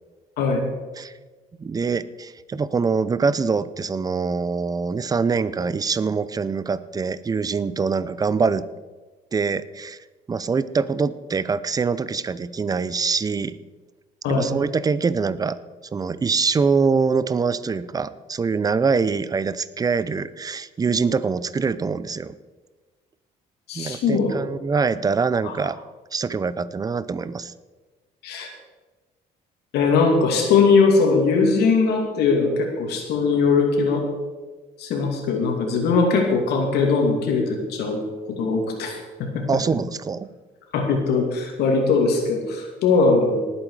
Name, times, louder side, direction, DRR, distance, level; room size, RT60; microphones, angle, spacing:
voice 1, 1.6-8.7 9.3-10.0 10.3-13.6 14.3-15.6 15.9-22.4 23.7-25.8 26.1-27.5 39.5-40.3, right 5 dB, 20° right, 16 dB, 0.6 m, -24 dB
voice 2, 23.7-24.3 25.4-25.5 28.2-28.5 29.7-34.1 34.8-38.0 38.3-39.4 40.7-43.4, left 4 dB, 75° left, 2 dB, 2.6 m, -20 dB
19.0 x 8.5 x 4.8 m, 1.3 s
cardioid pair, 110°, 17 cm